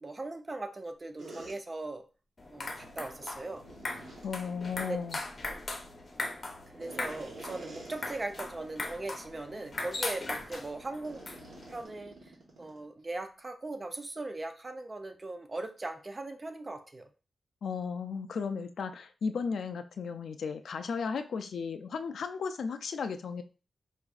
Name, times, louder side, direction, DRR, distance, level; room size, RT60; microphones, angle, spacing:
voice 1, 0.0-2.0 2.5-3.6 4.9-5.0 6.7-11.2 11.7-17.1, right 2 dB, 30° right, 6 dB, 0.5 m, -39 dB
sound 1, 1.2-1.6 3.6-4.3 6.8-8.5 8.9-9.0 9.6-9.8 11.0-12.8, right 2 dB, 75° right, 1.2 m, -48 dB
sound 2, 2.4-11.8, left 2 dB, 40° left, 0.7 m, -40 dB
voice 2, 4.2-5.2 17.6-23.4, left 5 dB, 85° left, 8 dB, 0.3 m, -35 dB
4.7 x 2.5 x 2.3 m, 0.34 s
wide cardioid pair, 110°, 0 cm